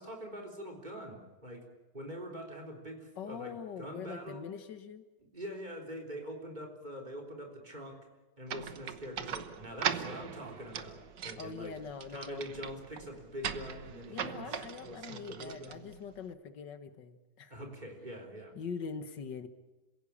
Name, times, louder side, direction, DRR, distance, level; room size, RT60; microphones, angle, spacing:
voice 1, 0.0-1.7 1.9-4.4 5.2-8.0 8.4-11.8 12.1-14.6 14.8-15.8 17.5-18.5, equal, 25° right, 3 dB, 3.9 m, -44 dB
voice 2, 3.2-5.0 11.4-12.4 14.1-17.5 18.6-19.5, left 6 dB, 80° left, 10 dB, 1.9 m, -43 dB
sound 1, 8.5-16.3, right 8 dB, 75° right, 1.7 m, -40 dB
26.5 x 17.0 x 8.6 m, 1.2 s
omnidirectional pair, 1.9 m